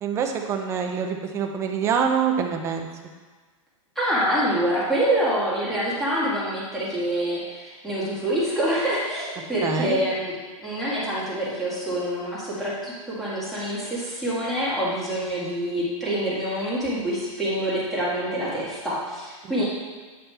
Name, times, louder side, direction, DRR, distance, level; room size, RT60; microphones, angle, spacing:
voice 1, 0.0-2.9 9.6-10.0 19.4-19.6, right 7 dB, 15° right, 3 dB, 0.5 m, -25 dB
voice 2, 3.9-10.3 10.6-19.6, equal, ahead, -9 dB, 1.8 m, -26 dB
8.9 x 5.5 x 3.4 m, 1.4 s
supercardioid pair, 160°, 18 cm